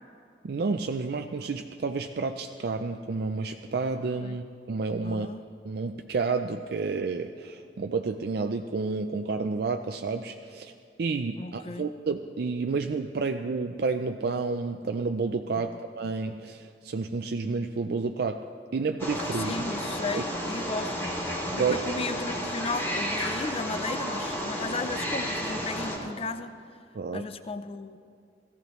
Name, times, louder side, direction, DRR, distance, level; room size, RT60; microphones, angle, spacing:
voice 1, 0.4-5.3 5.6-10.7 11.0-18.5 18.7-19.5 20.1-20.2 21.6-21.8 26.9-27.3, right 4 dB, 60° right, 6 dB, 0.4 m, -30 dB
voice 2, 5.0-5.4 11.4-11.9 15.7-15.8 19.4-21.2 21.5-26.5 27.1-28.0, left 3 dB, 35° left, 11 dB, 0.5 m, -35 dB
Wild animals, 19.0-26.0, equal, 15° left, 2.4 m, -32 dB
17.5 x 14.5 x 3.1 m, 2.5 s
head